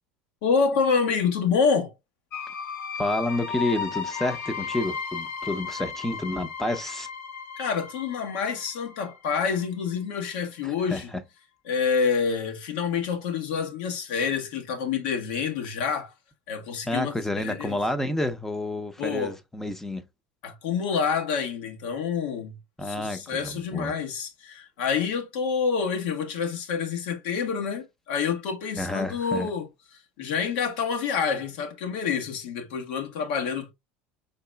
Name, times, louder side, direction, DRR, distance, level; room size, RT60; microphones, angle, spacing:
voice 1, 0.4-1.9 7.6-11.1 11.7-16.1 16.5-17.8 19.0-19.3 20.4-22.6 22.8-29.7 30.2-33.7, left 6 dB, 80° left, 1.2 m, -27 dB
sound 1, 2.3-9.9, left 6 dB, 60° left, 1.6 m, -35 dB
voice 2, 3.0-7.1 10.6-11.2 16.9-20.0 22.8-24.0 28.8-29.5, left 1 dB, 5° left, 0.6 m, -29 dB
5.1 x 3.9 x 2.2 m
supercardioid pair, 115°, 5 cm